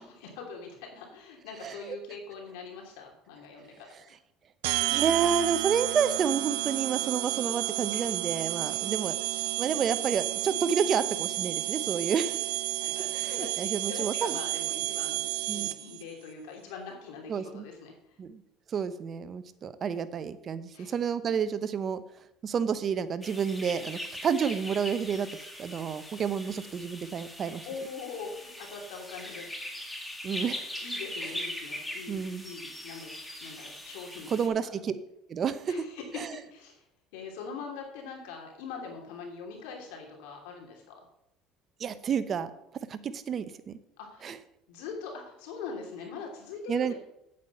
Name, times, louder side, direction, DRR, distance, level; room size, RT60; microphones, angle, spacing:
voice 1, 0.0-4.1 7.9-8.2 8.6-8.9 12.8-17.9 20.7-20.9 27.6-29.5 30.8-34.5 35.7-36.2 36.5-36.8 37.1-40.9 44.0-44.3 44.7-46.9, left 5 dB, 85° left, 1 dB, 2.9 m, -42 dB
voice 2, 1.6-2.0 4.9-9.2 9.6-12.4 13.1-14.4 15.5-15.7 17.3-17.6 18.2-18.4 18.7-22.0 22.4-25.3 25.6-27.7 30.2-30.7 32.1-32.5 34.3-34.9 35.3-35.7 36.1-36.3 41.8-42.5 42.9-43.8 44.2-44.4 46.7-46.9, right 7 dB, 40° right, 12 dB, 0.9 m, -30 dB
sound 1, 4.6-16.0, right 18 dB, 90° right, 0.5 m, -31 dB
sound 2, 23.2-34.5, left 1 dB, 5° left, 1.8 m, -41 dB
8.6 x 8.2 x 5.5 m, 0.80 s
supercardioid pair, 115°, 0 cm